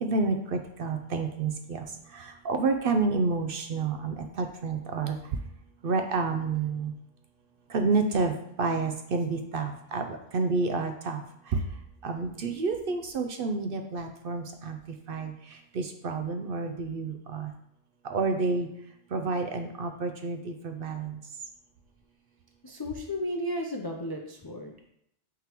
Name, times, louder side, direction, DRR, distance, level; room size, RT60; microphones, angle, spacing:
voice 1, 0.0-1.8 2.1-5.2 5.8-6.9 7.7-11.2 11.5-11.6 12.0-14.8 15.1-15.3 15.7-17.5 18.0-18.7 19.1-21.2, right 4 dB, 60° right, 5 dB, 0.7 m, -29 dB
voice 2, 22.6-24.9, left 1 dB, 35° left, 1 dB, 0.3 m, -34 dB
8.9 x 3.7 x 3.0 m, 0.74 s
omnidirectional pair, 1.2 m